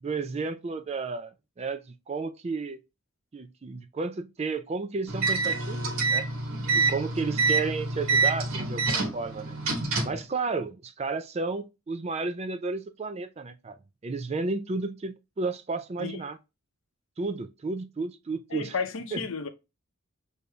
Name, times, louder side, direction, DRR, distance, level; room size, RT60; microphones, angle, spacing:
voice 1, 0.0-1.8 2.1-2.8 3.3-6.3 6.7-9.6 10.0-13.8 14.0-16.4 17.2-18.7 19.1-19.2, right 3 dB, 30° right, 0.3 m, -32 dB
sound 1, 5.1-10.2, right 3 dB, 80° right, 1.2 m, -27 dB
voice 2, 18.5-19.5, left 5 dB, 70° left, 0.6 m, -32 dB
6.5 x 2.7 x 2.3 m
head